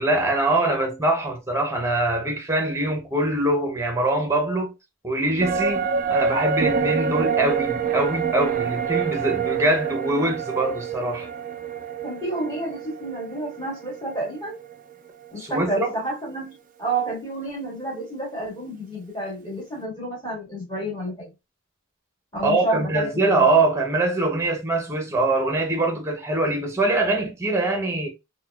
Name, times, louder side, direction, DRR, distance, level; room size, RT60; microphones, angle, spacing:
voice 1, 0.0-4.7 5.0-11.3 15.4-15.9 22.4-28.1, right 2 dB, 15° right, 0.7 m, -23 dB
sound 1, 5.4-14.9 15.2-15.3, right 6 dB, 40° right, 0.3 m, -27 dB
voice 2, 12.0-14.6 15.3-16.5 16.8-21.3 22.3-23.4, right 1 dB, 20° left, 1.7 m, -30 dB
3.9 x 2.2 x 2.3 m
head